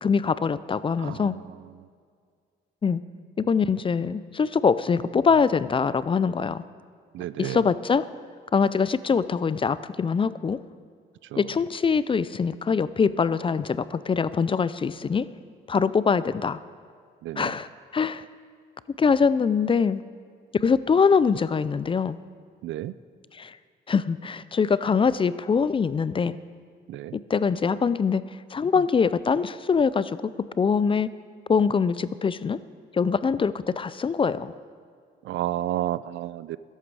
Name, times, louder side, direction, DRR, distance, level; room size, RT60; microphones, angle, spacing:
voice 1, 0.0-1.3 2.8-3.0 3.4-6.6 7.4-8.1 8.5-10.6 11.4-15.3 15.7-16.6 17.4-18.2 19.0-20.0 20.5-22.2 23.3-23.6 23.9-26.4 27.1-28.2 28.5-30.2 30.6-31.1 31.5-32.6 32.9-34.5, left 5 dB, 25° left, 16 dB, 0.4 m, -23 dB
voice 2, 1.0-1.9 7.1-7.6 11.3-11.4 17.2-17.5 22.6-22.9 26.9-27.2 35.2-36.6, right 13 dB, 75° right, 17 dB, 0.4 m, -32 dB
13.0 x 11.0 x 4.7 m, 2.1 s
cardioid pair, 90°, 20 cm